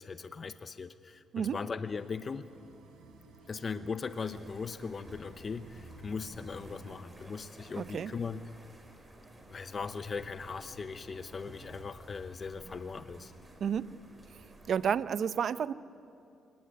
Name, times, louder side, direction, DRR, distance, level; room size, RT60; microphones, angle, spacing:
voice 1, 0.0-2.4 3.5-8.4 9.5-13.3, left 5 dB, 40° left, 11 dB, 0.8 m, -39 dB
sound 1, 1.8-7.0, right 3 dB, 85° right, 4.8 m, -55 dB
sound 2, 4.1-14.8, right 1 dB, 15° right, 5.2 m, -53 dB
voice 2, 7.8-8.1 13.6-13.9 14.7-15.7, right 8 dB, 60° right, 15 dB, 0.6 m, -31 dB
24.5 x 19.0 x 9.7 m, 2.6 s
cardioid pair, 90°, 0 cm